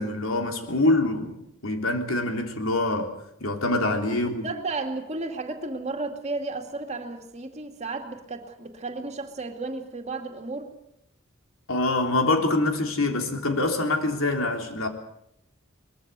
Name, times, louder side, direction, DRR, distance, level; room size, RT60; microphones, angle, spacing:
voice 1, 0.0-1.4 1.6-3.1 3.4-4.5 11.7-14.9, left 2 dB, 85° left, 3.5 m, -25 dB
voice 2, 4.1-10.7, right 3 dB, 35° right, 2.5 m, -33 dB
23.0 x 21.5 x 6.9 m
head